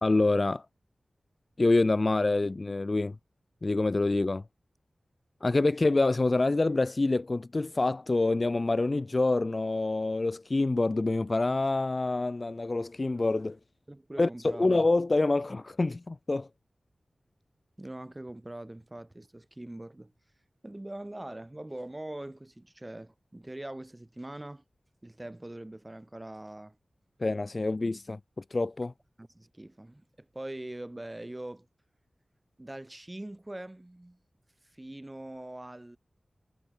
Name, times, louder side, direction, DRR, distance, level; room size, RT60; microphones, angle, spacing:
voice 1, 0.0-0.6 1.6-3.1 3.6-4.4 5.4-13.6 14.2-16.5 27.2-28.9, left 2 dB, 45° left, 0.9 m, -26 dB
voice 2, 13.9-14.7 17.8-20.1 20.6-24.6 25.0-26.8 29.2-31.7 32.6-34.2 34.7-36.0, right 1 dB, 20° right, 3.6 m, -42 dB
wide cardioid pair, 60°, 0 cm